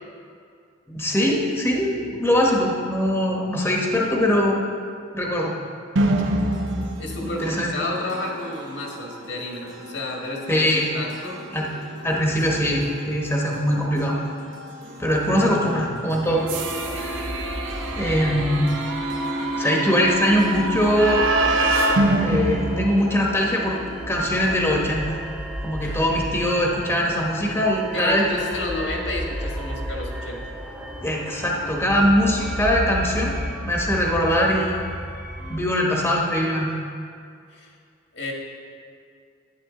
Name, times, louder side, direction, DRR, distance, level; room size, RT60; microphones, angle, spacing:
voice 1, 0.9-4.6 5.1-5.5 7.2-7.7 10.5-10.9 11.5-11.7 12.0-14.2 15.0-16.4 17.0-17.4 17.9-18.7 19.6-21.3 22.2-23.8 24.1-25.2 25.6-28.3 31.0-33.4 33.6-34.8 35.5-36.7, equal, 10° left, -2 dB, 1.1 m, -22 dB
sound 1, 6.0-23.7, right 2 dB, 85° right, 0.8 m, -28 dB
voice 2, 7.0-11.4 14.8-15.1 25.8-26.0 27.9-30.4 37.5-37.7 38.1-38.3, left 2 dB, 75° left, -1 dB, 1.7 m, -31 dB
sound 2, 16.3-35.6, equal, 5° right, 0.6 m, -33 dB
11.0 x 9.9 x 3.8 m, 2.3 s
head